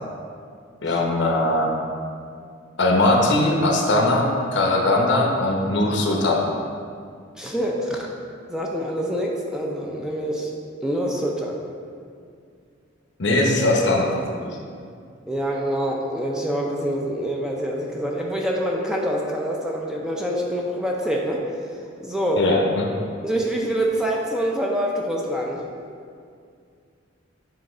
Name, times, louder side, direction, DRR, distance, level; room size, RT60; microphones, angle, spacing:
voice 1, 0.8-1.7 2.8-6.5 13.2-14.6 22.4-22.9, left 2 dB, 60° left, 0 dB, 0.9 m, -20 dB
voice 2, 7.4-8.1 8.5-10.5 10.8-11.6 15.3-21.4 22.0-22.4 23.0-25.6, equal, 5° right, -2 dB, 0.5 m, -26 dB
7.7 x 3.2 x 4.9 m, 2.3 s
head